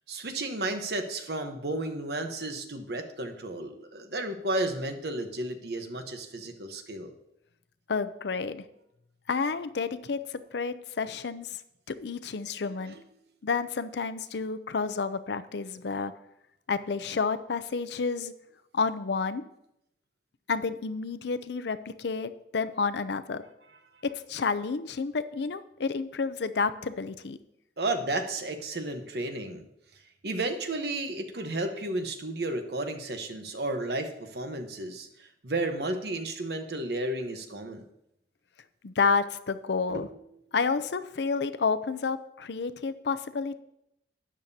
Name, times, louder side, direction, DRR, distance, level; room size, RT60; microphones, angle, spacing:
voice 1, 0.1-7.1 12.7-13.0 27.8-29.6 30.2-37.8 39.9-40.2, right 2 dB, 65° right, 6 dB, 1.0 m, -33 dB
voice 2, 7.9-8.6 9.3-10.2 10.5-11.6 11.9-12.9 13.4-16.1 16.7-18.3 18.7-19.4 20.5-23.4 24.0-27.4 38.8-40.1 40.5-43.5, left 4 dB, 70° left, 12 dB, 0.5 m, -30 dB
12.5 x 8.9 x 2.8 m, 0.80 s
head